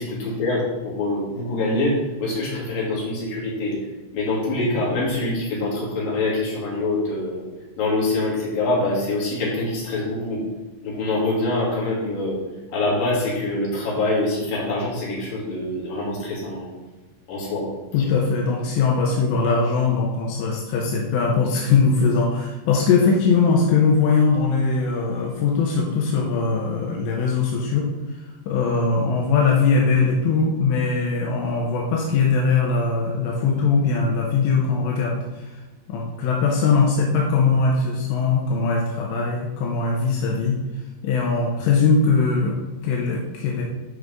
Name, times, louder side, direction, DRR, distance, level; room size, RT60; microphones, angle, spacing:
voice 1, 0.0-3.8 4.1-7.5 7.8-10.4 10.8-12.4 12.7-16.7 17.3-17.7 18.0-18.1 28.5-28.6, left 2 dB, 55° left, -6 dB, 4.2 m, -25 dB
voice 2, 17.9-35.5 35.9-40.6 41.0-43.6, left 4 dB, 85° left, -1 dB, 3.3 m, -21 dB
12.0 x 5.3 x 3.6 m, 1.1 s
omnidirectional pair, 5.0 m